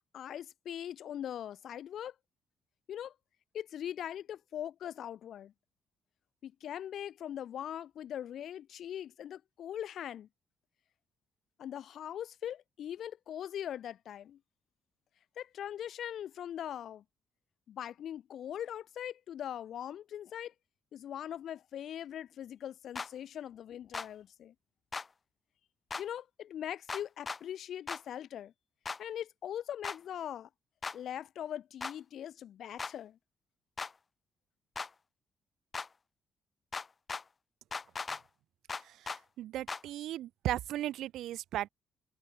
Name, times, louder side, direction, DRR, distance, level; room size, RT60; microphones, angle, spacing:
voice 1, 0.1-2.1 2.9-3.1 3.5-5.5 6.4-10.3 11.6-14.4 15.4-17.0 17.7-20.5 20.9-24.5 26.0-28.5 29.0-30.5 30.9-33.2, left 10 dB, 70° left, 0.9 m, -41 dB
sound 1, 23.0-23.1 23.9-24.1 24.9-25.1 25.9-26.0 26.9-27.4 27.9-28.0 28.9-29.0 29.8-30.0 30.8-31.0 31.8-32.0 32.8-32.9 33.8-33.9 34.8-34.9 35.7-35.9 36.7-37.2 37.7-38.2 38.7-39.2 39.7-39.8, left 4 dB, 30° left, 1.0 m, -38 dB
voice 2, 39.4-41.7, right 13 dB, 80° right, 0.5 m, -36 dB
cardioid pair, 90°, 0 cm